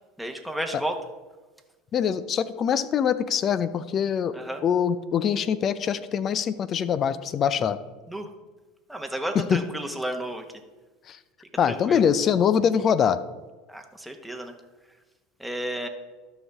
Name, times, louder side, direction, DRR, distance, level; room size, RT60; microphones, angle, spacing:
voice 1, 0.2-1.0 4.3-4.6 8.1-8.3 8.9-10.4 11.6-12.0 13.7-14.5 15.4-15.9, right 1 dB, 5° right, 4 dB, 1.0 m, -32 dB
voice 2, 1.9-4.3 4.6-7.8 9.3-9.6 11.1-11.2 11.6-13.2, left 8 dB, 40° left, 14 dB, 0.5 m, -23 dB
12.5 x 5.5 x 3.5 m, 1.2 s
hypercardioid pair, 80°, 0 cm